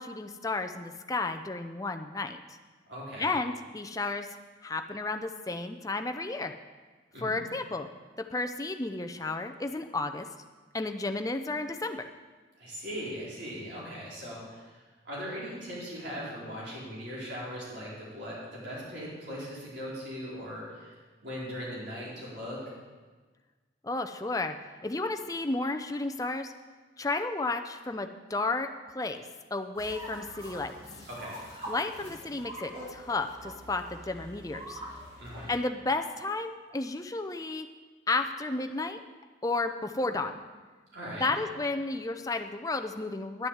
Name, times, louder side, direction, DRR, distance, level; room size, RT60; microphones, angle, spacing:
voice 1, 0.0-2.6 3.2-4.3 4.6-6.5 7.2-7.9 8.3-10.3 10.7-12.0 23.8-24.6 24.8-26.5 27.0-28.7 28.9-30.7 31.7-34.8 35.5-37.7 38.1-39.0 39.4-40.3 41.1-43.5, left 3 dB, 20° left, 6 dB, 0.5 m, -32 dB
voice 2, 2.9-3.3 7.1-7.4 12.6-14.7 15.0-22.6 31.1-31.4 35.2-35.5 40.9-41.3, equal, 65° right, -7 dB, 4.6 m, -39 dB
sound 1, 29.8-35.6, equal, 30° right, 2.6 m, -44 dB
11.0 x 7.6 x 7.9 m, 1.4 s
head